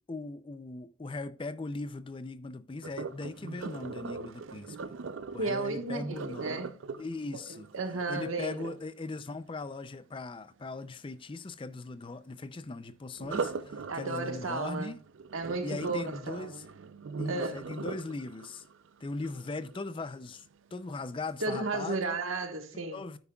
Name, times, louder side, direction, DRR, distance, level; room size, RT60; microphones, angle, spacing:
voice 1, 0.1-4.8 5.3-6.6 7.0-7.7 8.1-15.0 15.6-16.7 17.2-18.7 19.0-22.2 22.9-23.2, left 3 dB, 25° left, 0.4 m, -39 dB
Sink (filling or washing), 2.8-8.8 13.2-20.2 20.7-21.0 21.5-21.6, right 4 dB, 70° right, 0.5 m, -40 dB
voice 2, 5.4-6.7 7.3-7.4 7.7-8.7 13.9-14.9 15.3-16.6 17.2-17.7 21.4-23.0, right 3 dB, 85° right, 1.3 m, -34 dB
9.5 x 9.4 x 2.3 m
head